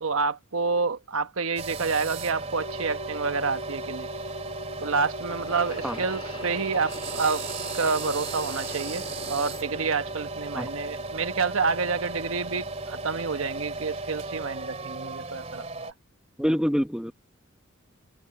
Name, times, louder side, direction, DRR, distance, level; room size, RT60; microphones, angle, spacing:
voice 1, 0.0-4.1 4.8-7.4 7.7-15.9, right 4 dB, 85° right, 1.2 m, -28 dB
sound 1, 1.6-15.9, right 3 dB, 30° right, 2.9 m, -35 dB
sound 2, 2.6-15.2, left 1 dB, 65° left, 4.8 m, -45 dB
sound 3, 3.1-3.2 5.2-10.3 10.6-11.4 12.2-12.3 13.3-13.4, left 2 dB, 25° left, 1.7 m, -43 dB
voice 2, 16.4-17.1, equal, 5° right, 0.9 m, -25 dB
head